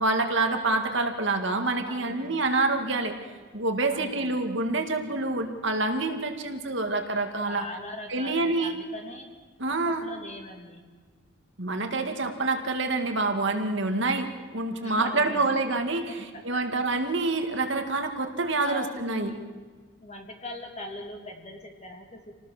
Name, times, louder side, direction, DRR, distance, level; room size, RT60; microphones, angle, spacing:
voice 1, 0.0-3.1 3.5-7.7 8.1-8.8 9.6-10.0 11.6-19.3, right 3 dB, 60° right, 5 dB, 2.1 m, -27 dB
voice 2, 1.9-2.5 3.9-4.4 7.4-9.3 9.7-10.8 14.8-15.5 16.1-16.6 18.6-19.4 20.0-22.4, left 1 dB, 30° left, 3 dB, 2.9 m, -41 dB
28.0 x 19.0 x 6.7 m, 1.5 s
head